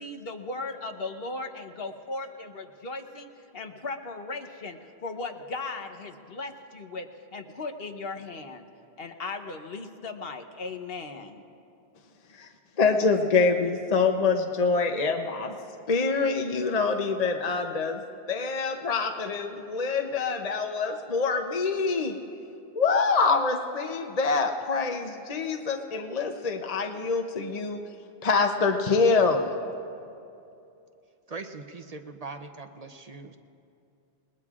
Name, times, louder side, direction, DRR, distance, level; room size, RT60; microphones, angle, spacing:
voice 1, 0.0-8.7 9.0-11.4, left 3 dB, 65° left, 6 dB, 1.2 m, -37 dB
voice 2, 12.8-15.5 15.9-18.0 18.3-22.2 22.7-27.8 28.2-29.5, left 4 dB, 40° left, 4 dB, 0.8 m, -25 dB
voice 3, 31.3-33.4, right 3 dB, 40° right, 6 dB, 0.7 m, -41 dB
29.0 x 20.0 x 2.4 m, 2.6 s
omnidirectional pair, 1.1 m